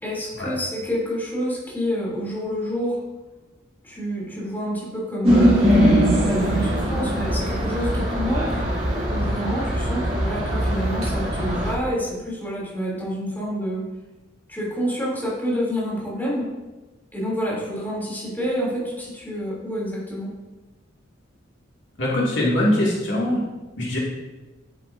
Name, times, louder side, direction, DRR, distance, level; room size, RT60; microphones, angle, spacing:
voice 1, 0.0-3.0 3.8-5.7 6.1-8.6 8.9-13.8 14.5-16.5 17.1-20.3, equal, 10° left, -6 dB, 3.0 m, -28 dB
sound 1, 5.2-11.7, equal, 30° right, 2.7 m, -21 dB
voice 2, 22.0-23.4 23.8-24.0, left 1 dB, 70° left, -5 dB, 2.3 m, -22 dB
10.5 x 8.9 x 2.7 m, 1.2 s
head